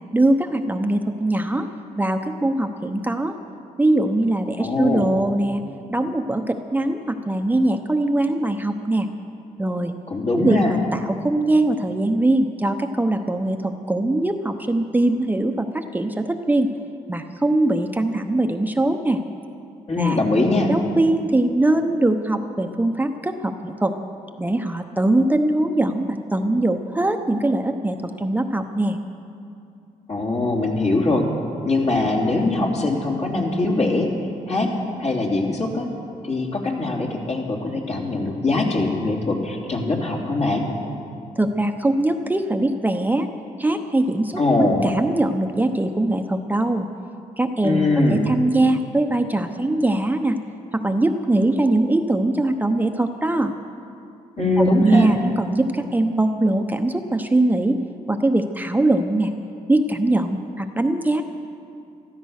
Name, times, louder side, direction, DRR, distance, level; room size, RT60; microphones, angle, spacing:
voice 1, 0.1-1.7 2.0-3.3 3.8-5.6 5.9-9.1 9.6-9.9 10.3-16.7 17.1-19.2 20.0-20.2 20.7-24.0 24.4-29.0 41.4-43.3 43.6-46.9 47.4-50.4 50.7-53.5 54.6-57.8 58.1-59.3 59.7-61.2, right 2 dB, 10° right, 5 dB, 0.8 m, -21 dB
voice 2, 4.6-5.1 10.1-10.7 19.9-20.7 30.1-31.3 31.6-34.1 34.5-34.7 35.0-35.9 36.2-40.7 44.4-44.8 47.6-48.2 54.4-55.1, left 2 dB, 50° left, -1 dB, 3.2 m, -21 dB
14.5 x 13.5 x 6.5 m, 2.6 s
cardioid pair, 70°, 14 cm